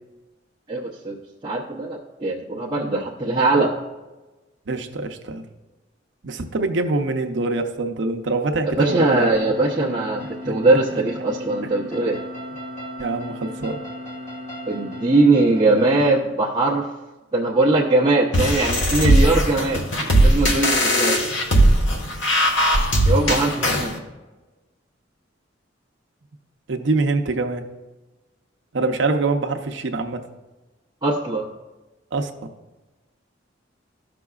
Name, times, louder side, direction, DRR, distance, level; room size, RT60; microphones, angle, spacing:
voice 1, 0.7-1.2 1.4-3.8 8.8-12.2 14.7-16.9 17.3-21.2 23.0-24.0 31.0-31.5, right 2 dB, 20° right, -6 dB, 0.7 m, -21 dB
voice 2, 4.7-5.4 6.2-9.3 10.4-10.5 13.0-13.8 26.7-27.6 28.7-30.2 32.1-32.3, right 3 dB, 65° right, 5 dB, 0.7 m, -24 dB
sound 1, 9.3-16.2, left 1 dB, 40° left, 1.7 m, -35 dB
sound 2, 18.3-23.9, equal, 75° left, 1.2 m, -18 dB
14.5 x 6.0 x 2.4 m, 1.2 s
head